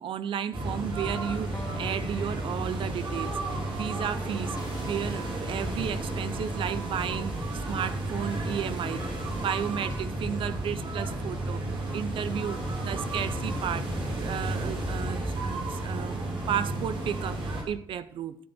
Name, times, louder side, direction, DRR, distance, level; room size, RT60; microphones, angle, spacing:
voice 1, 0.0-4.6 4.8-11.6 11.9-18.4, right 9 dB, 90° right, 0.6 m, -33 dB
sound 1, 0.5-17.6, right 1 dB, 75° right, 3.7 m, -32 dB
Electric guitar, 1.5-8.7, left 4 dB, 25° left, 1.3 m, -50 dB
sound 2, 3.6-7.6, left 2 dB, 55° left, 2.3 m, -46 dB
13.5 x 5.1 x 6.2 m
cardioid pair, 70°, 9 cm